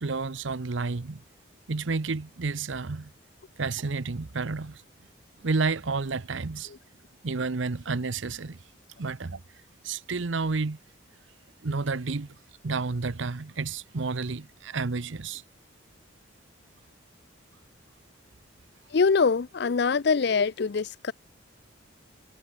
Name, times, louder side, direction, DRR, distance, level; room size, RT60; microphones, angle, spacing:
voice 1, 0.0-1.2 1.7-3.1 3.6-4.8 5.4-6.7 7.2-8.6 9.0-9.4 9.8-10.8 11.6-12.3 12.6-15.4, right 4 dB, 70° right, 0.8 m, -30 dB
voice 2, 18.9-21.1, left 5 dB, 55° left, 0.5 m, -24 dB
head